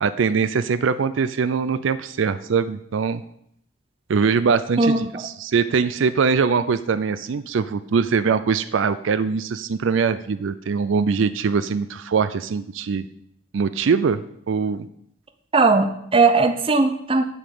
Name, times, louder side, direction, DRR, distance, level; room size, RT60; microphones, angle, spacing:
voice 1, 0.0-3.2 4.1-13.0 13.5-14.2 14.5-14.8, right 5 dB, 75° right, 13 dB, 0.4 m, -22 dB
voice 2, 15.5-17.2, right 3 dB, 25° right, 8 dB, 0.6 m, -18 dB
8.4 x 5.1 x 7.6 m, 0.73 s
head